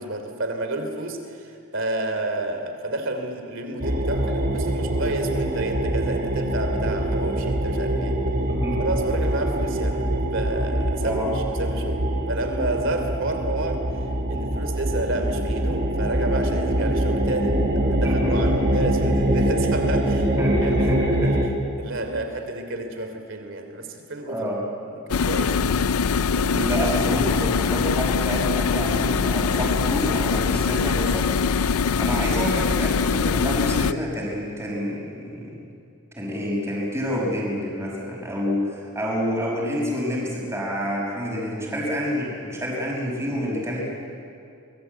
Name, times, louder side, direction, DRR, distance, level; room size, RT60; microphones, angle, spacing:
voice 1, 0.0-8.2 8.8-10.0 10.3-13.8 14.3-17.6 17.9-20.3 20.6-20.8 21.1-21.2 21.8-24.5 24.8-25.8 26.3-26.6 27.1-27.2, right 2 dB, 55° right, 6 dB, 3.2 m, -30 dB
sound 1, 3.8-21.5, right 1 dB, 40° right, 2.3 m, -24 dB
voice 2, 8.5-8.8 11.0-11.3 18.0-18.5 20.4-21.3 24.3-24.6 26.5-31.2 32.0-35.3 36.2-43.8, equal, 10° right, -4 dB, 5.6 m, -28 dB
sound 2, 25.1-33.9, left 5 dB, 80° left, 0.5 m, -23 dB
24.5 x 21.5 x 8.2 m, 2.5 s
head